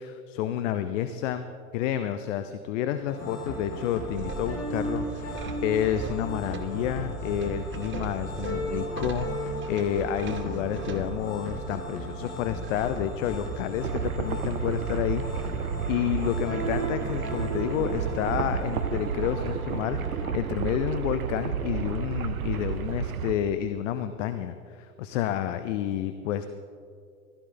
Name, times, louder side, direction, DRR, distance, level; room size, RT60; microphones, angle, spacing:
voice 1, 0.0-1.5 1.7-5.4 5.6-15.2 15.9-26.5, left 10 dB, 60° left, 10 dB, 0.8 m, -30 dB
sound 1, 3.1-20.4, right 1 dB, 35° left, 4.3 m, -35 dB
sound 2, 3.9-13.9, right 7 dB, 25° right, 1.0 m, -40 dB
sound 3, 13.8-23.4, right 7 dB, 85° right, 0.9 m, -31 dB
15.5 x 13.5 x 3.9 m, 2.2 s
hypercardioid pair, 95°, 42 cm